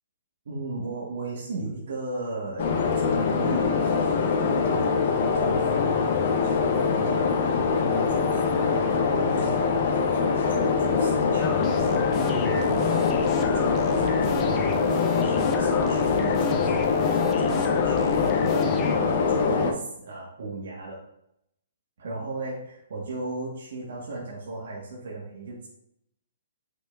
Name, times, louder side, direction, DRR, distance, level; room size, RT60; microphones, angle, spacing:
voice 1, 0.4-2.7 2.9-5.9 6.5-13.2 13.5-21.0 22.0-25.7, right 2 dB, 70° right, -5 dB, 1.8 m, -36 dB
sound 1, 2.6-19.7, left 5 dB, 50° left, 1.0 m, -23 dB
sound 2, 11.4-19.0, left 6 dB, 25° left, 0.7 m, -34 dB
8.1 x 6.1 x 2.7 m, 0.77 s
hypercardioid pair, 155°, 0 cm